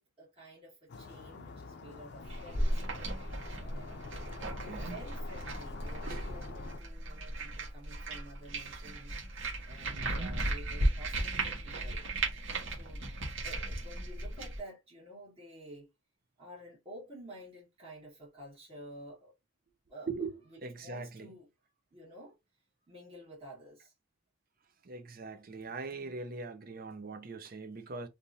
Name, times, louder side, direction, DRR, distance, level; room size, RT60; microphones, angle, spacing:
voice 1, 0.0-2.8 3.6-9.2 9.6-12.1 12.7-13.1 13.4-15.9 16.4-19.3 19.9-20.1 20.8-21.5 21.9-22.4 22.9-23.9, right 1 dB, 30° right, 1.8 m, -51 dB
sound 1, 0.9-6.8, left 4 dB, 60° left, 0.5 m, -47 dB
sound 2, 2.2-14.6, right 1 dB, 70° right, 1.2 m, -36 dB
voice 2, 4.4-5.0 6.0-6.3 9.9-10.3 20.1-21.3 24.8-28.1, right 4 dB, 50° right, 0.6 m, -41 dB
3.4 x 2.6 x 2.7 m
head